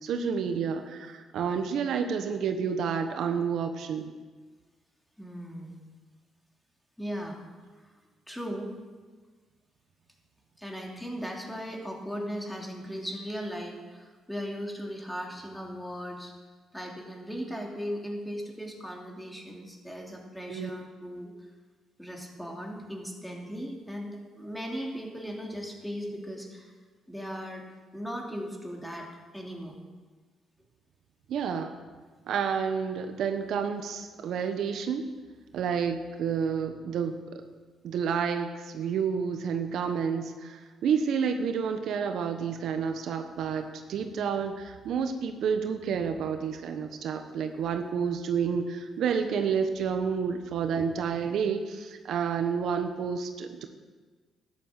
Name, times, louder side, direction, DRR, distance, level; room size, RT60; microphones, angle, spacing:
voice 1, 0.0-4.1 20.5-20.7 31.3-31.8 32.3-35.1 35.5-37.2 37.8-53.7, right 6 dB, 75° right, 7 dB, 1.1 m, -30 dB
voice 2, 5.2-5.7 7.0-7.4 8.3-8.7 10.6-16.3 16.7-21.3 22.0-26.7 27.1-27.6 27.9-29.1 29.3-29.7, equal, 5° left, 0 dB, 3.1 m, -37 dB
13.0 x 10.0 x 7.6 m, 1.4 s
cardioid pair, 90°, 0 cm